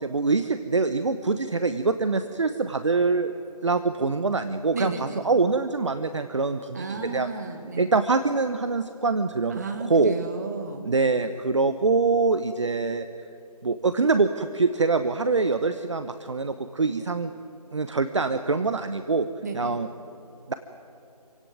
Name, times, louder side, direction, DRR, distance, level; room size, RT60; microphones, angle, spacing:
voice 1, 0.0-3.3 3.6-4.9 5.2-7.3 7.8-9.6 9.9-10.1 10.9-13.1 13.6-17.3 17.7-19.3 19.5-19.9 20.5-20.6, right 4 dB, 45° right, 10 dB, 0.9 m, -24 dB
voice 2, 4.7-5.3 6.7-8.0 9.5-10.9 19.4-19.8, right 4 dB, 25° right, 5 dB, 1.9 m, -33 dB
27.0 x 17.0 x 9.3 m, 2.9 s
figure-of-eight pair, 170°, 20 cm